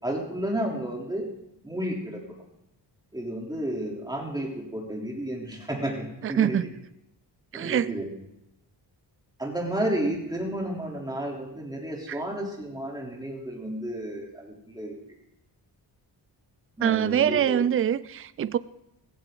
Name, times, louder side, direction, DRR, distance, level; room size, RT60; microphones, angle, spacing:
voice 1, 0.0-1.2 1.6-2.4 3.1-6.6 7.5-8.1 9.4-14.9 16.8-17.6, right 1 dB, 10° right, 3.4 m, -32 dB
voice 2, 6.2-6.7 7.5-8.0 12.1-12.2 16.8-18.6, right 9 dB, 35° right, 0.4 m, -24 dB
16.5 x 15.5 x 3.9 m
wide cardioid pair, 135°, 42 cm